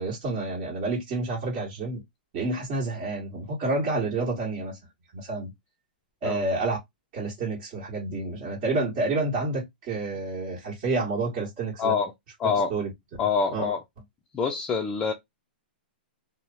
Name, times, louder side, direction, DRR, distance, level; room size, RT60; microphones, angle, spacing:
voice 1, 0.0-2.0 2.3-4.8 5.1-5.5 6.2-6.8 7.1-11.9 12.7-12.9 13.5-13.7, right 3 dB, 35° right, 1.4 m, -29 dB
voice 2, 11.8-12.1 12.4-12.7 13.2-13.8 14.3-15.1, left 5 dB, 15° left, 0.4 m, -25 dB
3.0 x 2.0 x 2.5 m
hypercardioid pair, 155°, 5 cm